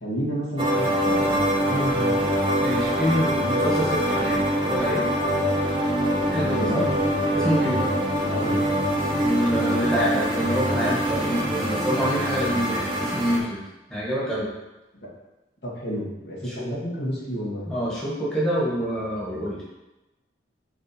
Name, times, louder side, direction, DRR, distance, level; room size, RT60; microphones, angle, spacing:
voice 1, 0.0-2.4 6.6-6.8 8.2-8.7 15.0-15.1 15.6-17.7, equal, 65° left, -6 dB, 2.1 m, -31 dB
sound 1, 0.6-13.4, equal, 25° right, 1.0 m, -24 dB
voice 2, 2.6-5.0 6.3-6.9 7.3-7.9 9.2-13.6 13.9-14.5 16.4-16.7 17.7-19.6, equal, 5° left, -7 dB, 1.7 m, -26 dB
7.8 x 3.3 x 4.4 m, 1.0 s
head